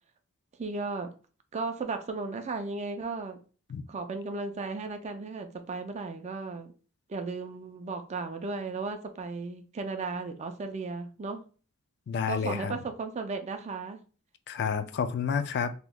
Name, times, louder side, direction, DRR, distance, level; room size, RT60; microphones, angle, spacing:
voice 1, 0.6-1.1 1.5-3.4 3.9-6.7 7.1-11.4 12.3-14.0, right 3 dB, 35° right, 0.4 m, -35 dB
voice 2, 12.1-12.7 14.5-15.7, left 6 dB, 55° left, 0.3 m, -30 dB
3.4 x 2.9 x 2.2 m
head